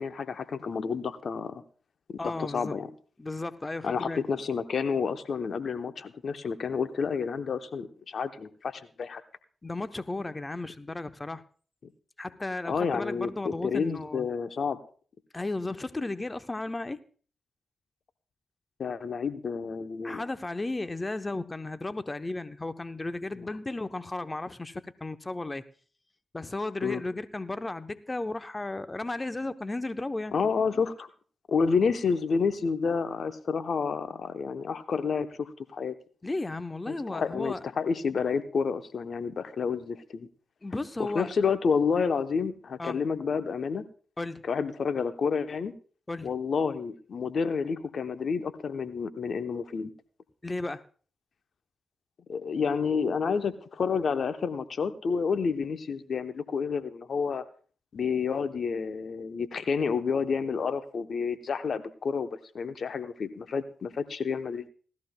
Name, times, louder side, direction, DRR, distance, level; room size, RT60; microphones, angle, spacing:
voice 1, 0.0-1.6 2.1-2.9 3.8-9.2 12.7-14.8 18.8-20.2 26.8-27.0 30.3-31.1 31.5-35.9 36.9-40.3 41.0-43.9 44.5-45.7 46.2-49.9 52.3-57.4 57.9-64.7, left 5 dB, 65° left, 10 dB, 0.8 m, -29 dB
voice 2, 2.2-2.8 3.2-4.2 9.6-11.4 12.2-14.3 15.3-17.0 20.0-25.6 26.3-30.3 36.2-37.6 40.6-41.3 42.8-43.0 44.2-44.4 46.1-46.3 50.4-50.8, left 2 dB, 30° left, 11 dB, 0.7 m, -34 dB
18.5 x 13.5 x 2.2 m, 0.42 s
supercardioid pair, 40°, 0 cm